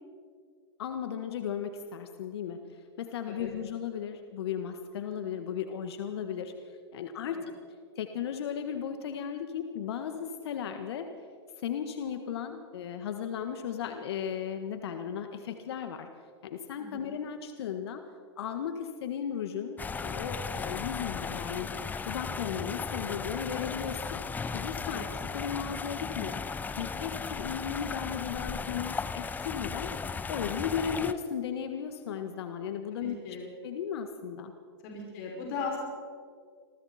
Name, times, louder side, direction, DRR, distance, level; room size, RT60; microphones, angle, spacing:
voice 1, 0.8-6.5 6.9-7.4 7.9-11.1 11.6-16.1 16.4-18.0 18.4-21.7 22.0-26.4 26.8-29.9 30.3-33.4 33.6-34.5, left 8 dB, 65° left, 7 dB, 1.7 m, -36 dB
voice 2, 16.8-17.1 24.8-25.1 32.9-33.5 34.8-35.8, left 5 dB, 50° left, -2 dB, 6.1 m, -38 dB
sound 1, 19.8-31.1, left 5 dB, 10° left, 0.7 m, -36 dB
28.0 x 22.0 x 4.4 m, 2.1 s
hypercardioid pair, 115°, 14 cm